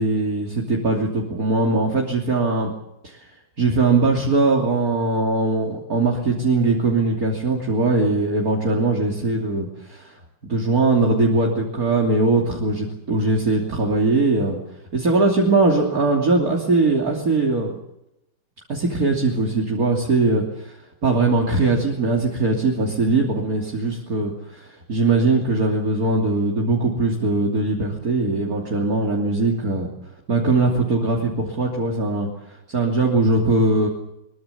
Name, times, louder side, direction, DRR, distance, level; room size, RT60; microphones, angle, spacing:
voice 1, 0.0-2.7 3.0-10.2 10.5-14.6 14.9-17.7 18.7-20.8 21.0-29.9 30.3-33.9, right 3 dB, 45° right, -1 dB, 3.5 m, -21 dB
23.0 x 22.5 x 7.0 m, 0.83 s
omnidirectional pair, 2.1 m